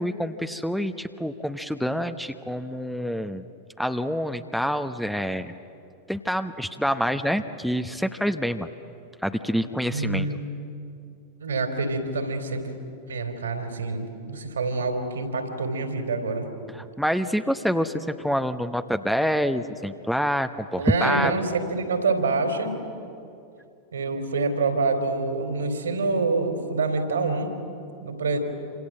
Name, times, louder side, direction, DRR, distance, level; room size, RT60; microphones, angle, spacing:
voice 1, 0.0-3.5 3.8-5.5 6.1-8.7 9.2-10.3 16.7-21.3, equal, ahead, 8 dB, 0.9 m, -27 dB
voice 2, 9.9-10.5 11.4-12.7 13.1-16.5 20.7-22.8 23.9-27.5 28.0-28.4, right 3 dB, 70° right, 6 dB, 3.9 m, -26 dB
28.0 x 26.5 x 7.6 m, 2.5 s
figure-of-eight pair, 90°, 0 cm